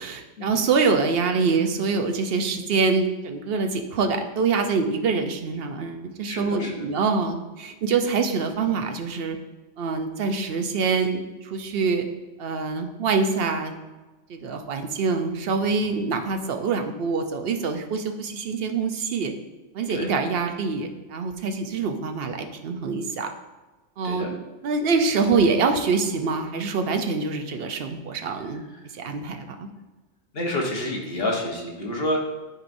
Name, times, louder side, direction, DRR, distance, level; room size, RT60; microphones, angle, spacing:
voice 1, 0.0-9.4 9.8-12.1 12.4-13.7 14.3-19.3 19.7-23.3 24.0-24.4 24.6-28.6 28.9-29.7, right 4 dB, 60° right, 5 dB, 0.8 m, -25 dB
voice 2, 6.3-6.9 15.8-15.9 19.9-20.1 24.0-24.3 30.3-32.2, left 1 dB, 55° left, -1 dB, 1.3 m, -28 dB
10.5 x 4.6 x 2.6 m, 1.2 s
omnidirectional pair, 1.2 m